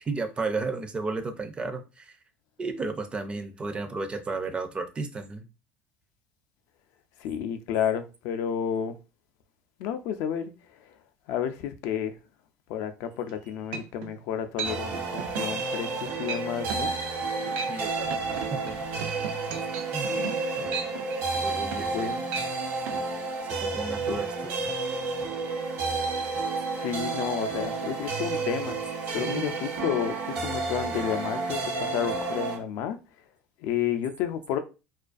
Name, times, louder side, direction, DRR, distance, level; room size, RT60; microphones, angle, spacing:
voice 1, 0.1-2.2 2.6-5.5 17.7-18.9 19.9-20.1 20.5-20.8 21.4-22.1 23.6-24.6 29.2-29.5, right 3 dB, 20° right, 0.4 m, -33 dB
voice 2, 7.2-9.0 9.8-11.0 11.3-12.2 12.7-16.9 21.9-22.2 24.0-24.2 26.7-28.8 29.1-33.0 33.6-34.6, left 9 dB, 70° left, 0.3 m, -31 dB
sound 1, 13.3-13.4 13.7-14.1 14.6-14.8 15.2-15.5 15.9-16.0 16.3-16.4 16.7-16.9 17.4-17.8 18.1-22.0 22.3-22.5 22.9-23.0, right 6 dB, 85° right, 0.4 m, -36 dB
sound 2, 14.6-32.6, right 3 dB, 65° right, 0.9 m, -31 dB
2.4 x 2.2 x 2.4 m
supercardioid pair, 115°, 5 cm